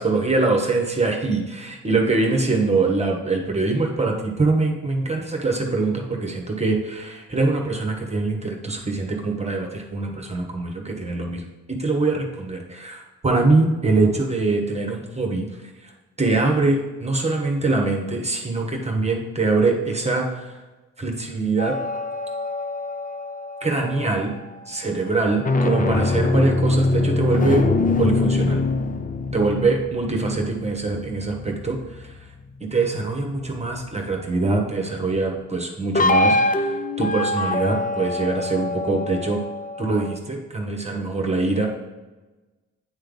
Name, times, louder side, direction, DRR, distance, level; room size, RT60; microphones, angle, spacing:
voice 1, 0.0-20.6 21.0-21.8 23.6-24.3 24.7-27.7 28.0-28.6 29.3-32.3 32.6-39.4 39.8-41.7, right 3 dB, 20° right, 1 dB, 1.4 m, -23 dB
sound 1, 21.6-24.2 25.3-32.1 35.9-40.2, left 2 dB, 25° left, 0.5 m, -24 dB
9.5 x 3.3 x 4.0 m, 1.2 s
supercardioid pair, 60°, 36 cm